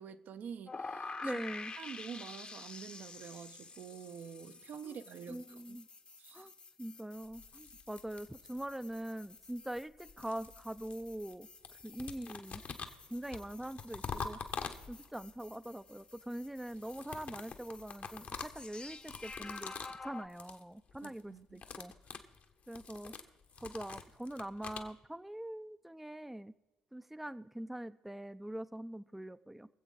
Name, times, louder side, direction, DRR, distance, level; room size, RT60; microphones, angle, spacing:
voice 1, 0.0-1.3 1.8-5.8 6.2-6.5 21.0-21.6, right 7 dB, 55° right, 0.7 m, -48 dB
sound 1, 0.7-20.3, left 3 dB, 30° left, 1.0 m, -50 dB
voice 2, 1.2-1.7 4.8-5.0 5.3-5.9 6.3-6.5 6.8-11.5 11.8-12.6 13.1-14.4 14.9-19.7 20.0-21.9 22.7-23.1 23.6-26.5 26.9-29.7, right 1 dB, 5° right, 0.5 m, -43 dB
sound 2, 7.2-8.8 9.8-11.4 11.6-15.3 16.7-20.0 20.3-20.6 20.9-21.2 21.5-24.9, left 5 dB, 50° left, 1.3 m, -46 dB
23.5 x 8.0 x 3.9 m
hypercardioid pair, 50°, 4 cm